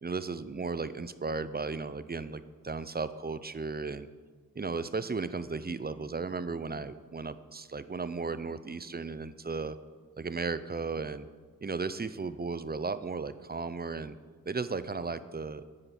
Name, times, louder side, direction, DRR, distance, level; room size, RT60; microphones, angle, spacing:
voice 1, 0.0-4.1 4.6-9.8 10.2-11.3 11.6-14.2 14.5-15.6, right 4 dB, 25° right, 13 dB, 0.5 m, -35 dB
9.8 x 9.1 x 6.9 m, 1.4 s
wide cardioid pair, 110°, 35 cm